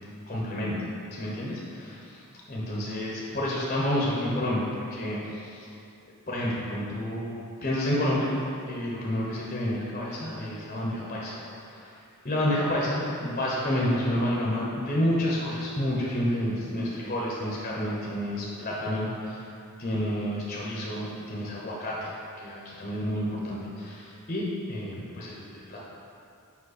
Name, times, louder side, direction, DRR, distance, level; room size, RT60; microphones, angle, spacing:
voice 1, 0.3-0.7 1.1-2.2 2.5-5.7 6.3-7.3 7.6-8.4 8.7-19.4 19.8-22.2 22.4-25.8, left 1 dB, 30° left, -5 dB, 0.8 m, -29 dB
5.3 x 5.2 x 4.0 m, 2.6 s
head